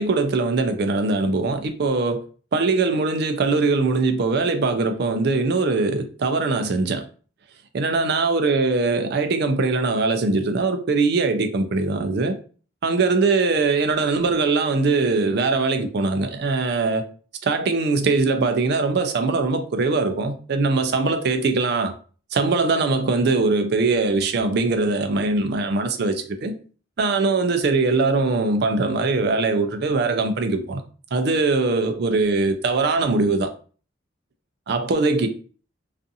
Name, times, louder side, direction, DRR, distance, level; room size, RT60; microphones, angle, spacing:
voice 1, 0.0-2.2 2.5-7.0 7.7-12.3 12.8-17.0 17.4-21.9 22.3-26.5 27.0-30.8 31.1-33.5 34.7-35.3, right 3 dB, 55° right, 0.4 m, -21 dB
2.5 x 2.5 x 2.6 m
head